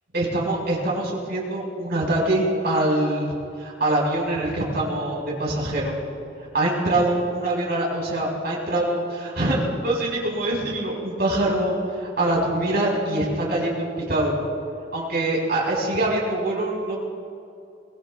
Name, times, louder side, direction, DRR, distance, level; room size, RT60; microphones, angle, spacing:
voice 1, 0.1-3.3 3.6-5.9 6.5-14.4 14.9-17.0, right 1 dB, 55° right, -3 dB, 4.9 m, -24 dB
24.5 x 20.5 x 2.3 m, 2.5 s
head